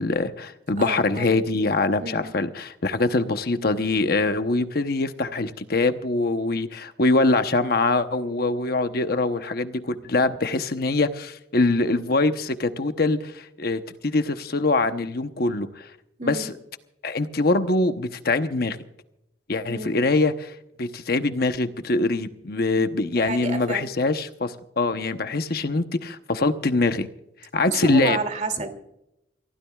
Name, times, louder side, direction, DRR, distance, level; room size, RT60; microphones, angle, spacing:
voice 1, 0.0-15.9 16.2-16.5 17.0-18.8 19.5-20.5 20.8-27.1 27.5-28.2, left 2 dB, 55° left, 8 dB, 0.9 m, -23 dB
voice 2, 0.8-1.4 2.0-2.3 16.2-16.5 19.6-20.1 22.8-22.9 23.2-23.9 27.6-28.7, right 2 dB, 40° right, 7 dB, 2.6 m, -30 dB
29.0 x 15.5 x 2.4 m, 0.84 s
head